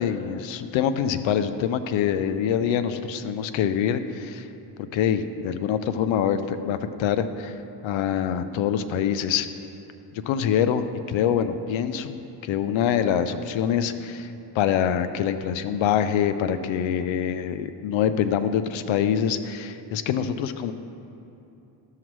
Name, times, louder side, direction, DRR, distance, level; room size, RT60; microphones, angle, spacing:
voice 1, 0.0-4.5 4.9-7.5 7.8-9.5 10.3-14.3 14.5-20.7, left 8 dB, 85° left, 11 dB, 0.6 m, -25 dB
13.5 x 5.7 x 3.1 m, 2.9 s
cardioid pair, 95°, 45 cm